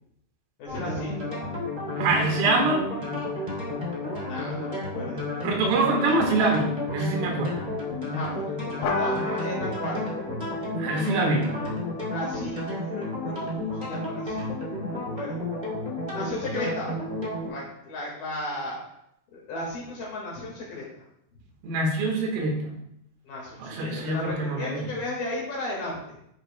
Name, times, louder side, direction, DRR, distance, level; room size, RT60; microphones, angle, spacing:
voice 1, 0.6-1.4 4.2-5.3 8.1-10.2 12.1-15.4 16.1-17.0 17.5-18.7 19.3-20.8 23.2-26.2, left 2 dB, 60° left, -3 dB, 3.0 m, -35 dB
sound 1, 0.7-17.5, left 2 dB, 25° right, 1.0 m, -32 dB
voice 2, 2.0-2.8 5.4-7.7 10.8-11.5 21.6-22.8 23.6-24.9, right 3 dB, 75° right, 1 dB, 4.1 m, -25 dB
sound 2, 8.8-13.7, left 3 dB, 85° left, 3.8 m, -35 dB
13.0 x 6.4 x 2.2 m, 0.76 s
omnidirectional pair, 6.0 m